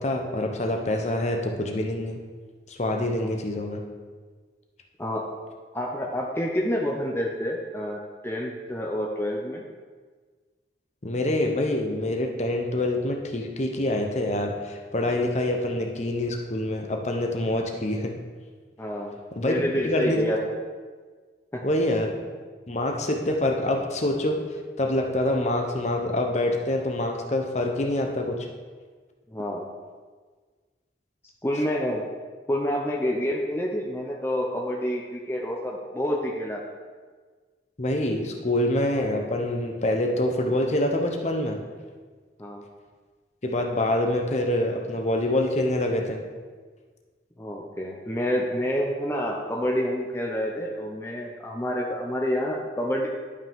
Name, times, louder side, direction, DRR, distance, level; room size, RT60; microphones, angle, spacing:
voice 1, 0.0-2.2 2.7-3.8 11.0-18.1 19.3-20.2 21.6-22.2 22.7-24.4 24.8-28.5 37.8-41.6 43.4-46.2, left 1 dB, 40° left, 2 dB, 0.9 m, -26 dB
voice 2, 5.7-9.6 18.8-20.5 21.5-21.6 29.3-29.7 31.4-32.0 32.5-36.6 42.4-42.6 47.4-53.1, equal, 15° left, -1 dB, 0.7 m, -28 dB
11.5 x 5.7 x 3.6 m, 1.5 s
head